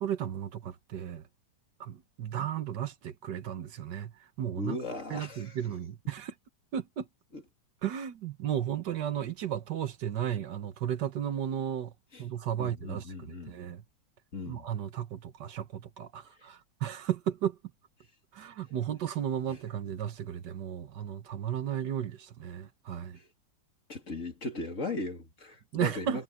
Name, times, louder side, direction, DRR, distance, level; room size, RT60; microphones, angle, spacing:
voice 1, 0.0-1.2 1.8-4.1 4.4-4.8 5.1-6.3 6.7-7.1 7.8-11.9 12.2-13.8 14.5-17.6 18.3-23.2 25.7-26.2, right 10 dB, 75° right, 1.7 m, -34 dB
voice 2, 4.6-5.5 7.3-7.4 12.1-12.2 12.6-13.5 14.3-14.7 23.9-26.2, left 3 dB, 45° left, 2.7 m, -37 dB
omnidirectional pair, 1.9 m